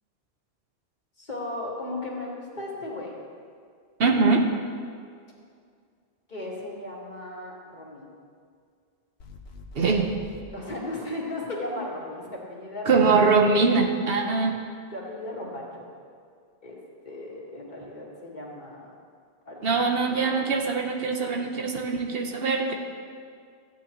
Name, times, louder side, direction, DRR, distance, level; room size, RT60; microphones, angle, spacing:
voice 1, 1.2-3.2 6.3-8.1 10.5-13.1 14.3-15.8 16.6-16.8 17.0-18.8 19.5-19.6, left 2 dB, 45° left, -4 dB, 2.0 m, -36 dB
voice 2, 4.0-4.4 9.7-10.1 12.9-14.6 19.6-22.7, right 4 dB, 70° right, 2 dB, 1.1 m, -22 dB
sound 1, 9.2-10.5, left 4 dB, 80° left, 1.1 m, -44 dB
14.5 x 9.0 x 3.1 m, 2.2 s
omnidirectional pair, 1.0 m